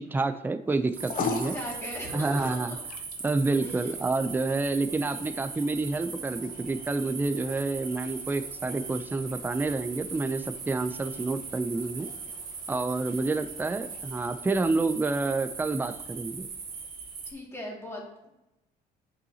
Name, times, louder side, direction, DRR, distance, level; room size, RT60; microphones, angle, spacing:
voice 1, 0.0-1.6 2.1-2.7 3.2-12.1 12.7-16.5, right 3 dB, 10° right, 9 dB, 0.4 m, -29 dB
sound 1, 0.7-17.2, left 5 dB, 55° left, 0.8 m, -44 dB
sound 2, 0.9-17.3, right 5 dB, 65° right, 1.8 m, -40 dB
voice 2, 1.2-2.8 3.6-4.0 17.3-18.3, left 1 dB, 15° left, -3 dB, 2.2 m, -39 dB
9.2 x 5.5 x 2.8 m, 0.89 s
cardioid pair, 110°, 17 cm